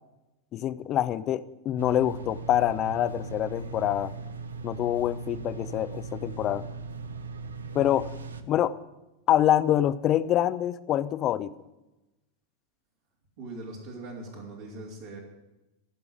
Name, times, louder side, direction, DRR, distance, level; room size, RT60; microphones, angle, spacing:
voice 1, 0.5-4.1 4.6-6.6 7.7-8.1 8.5-8.8 9.3-11.5, left 12 dB, 40° left, 15 dB, 0.6 m, -25 dB
sound 1, 1.8-8.4, right 4 dB, 90° right, 0.8 m, -38 dB
voice 2, 13.4-15.2, right 2 dB, 65° right, -3 dB, 3.3 m, -41 dB
15.5 x 5.6 x 9.5 m, 1.0 s
hypercardioid pair, 95°, 0 cm